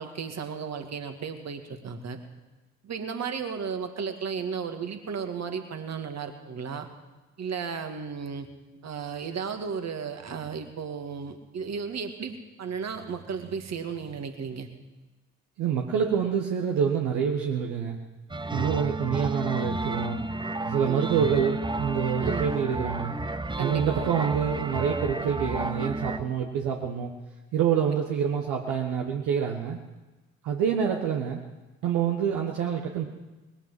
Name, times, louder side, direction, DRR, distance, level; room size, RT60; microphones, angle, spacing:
voice 1, 0.0-2.2 2.8-6.9 7.4-8.5 8.8-14.7 20.8-21.2 22.2-22.6 23.6-24.1, right 6 dB, 50° right, 6 dB, 2.1 m, -34 dB
voice 2, 15.6-18.0 18.5-20.2 20.6-23.1 23.6-27.1 27.5-29.8 30.4-31.4 31.8-33.1, right 7 dB, 70° right, 1 dB, 1.3 m, -27 dB
sound 1, 18.3-26.2, right 2 dB, 15° right, 0.9 m, -31 dB
20.0 x 9.1 x 7.7 m, 1.1 s
hypercardioid pair, 45°, 33 cm